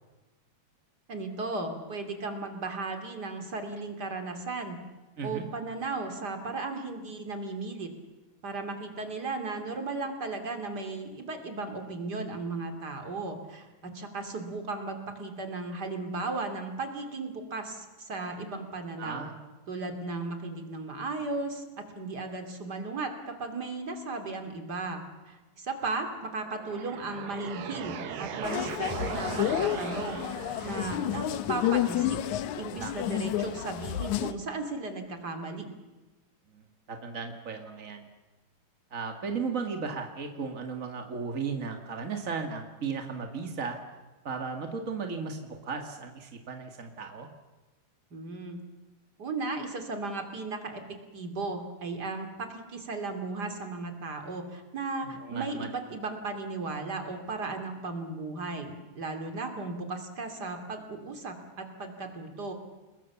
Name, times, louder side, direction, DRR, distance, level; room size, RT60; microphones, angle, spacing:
voice 1, 1.1-4.8 5.2-7.9 8.4-19.3 19.7-23.1 23.4-30.2 30.6-32.2 32.6-35.7 48.1-48.6 49.2-62.5, right 3 dB, 30° right, 6 dB, 2.6 m, -36 dB
voice 2, 19.0-19.3 32.8-32.9 36.5-38.1 38.9-43.8 44.2-47.3 55.0-55.7, right 5 dB, 50° right, 4 dB, 0.9 m, -35 dB
sound 1, 26.3-31.3, right 8 dB, 85° right, 3.8 m, -38 dB
sound 2, 28.4-34.3, left 12 dB, 85° left, 1.7 m, -30 dB
29.0 x 21.0 x 7.2 m, 1.1 s
omnidirectional pair, 4.8 m